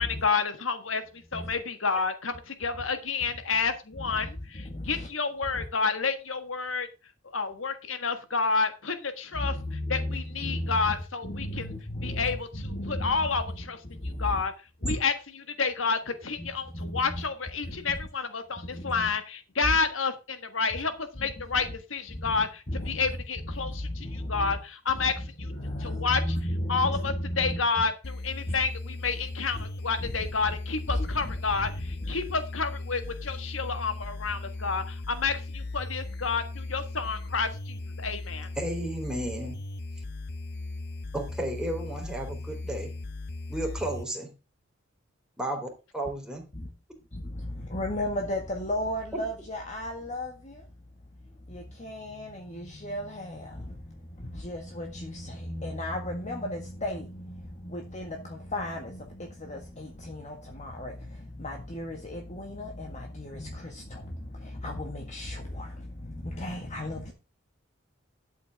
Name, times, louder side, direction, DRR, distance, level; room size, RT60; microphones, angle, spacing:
voice 1, 0.0-6.9 7.2-11.7 12.0-14.5 14.8-25.5 25.8-26.3 26.7-38.5, left 4 dB, 80° left, 1.6 m, -30 dB
voice 2, 4.0-5.1 5.5-5.6 9.3-11.0 11.2-13.3 13.8-14.4 14.8-15.0 16.4-17.2 17.7-18.0 18.6-19.1 21.2-21.3 22.1-23.0 23.4-24.6 24.9-25.1 25.4-27.8 28.5-28.6 29.5-29.6 30.0-30.6 30.9-32.2 46.5-46.7 47.1-50.7 51.4-67.1, left 1 dB, 35° left, 1.8 m, -35 dB
sound 1, 28.0-44.0, left 2 dB, 55° left, 0.9 m, -38 dB
voice 3, 38.6-39.6 41.1-42.9 43.5-44.3 45.4-45.7 45.9-46.4, right 1 dB, 5° right, 3.7 m, -33 dB
12.5 x 8.3 x 3.6 m
head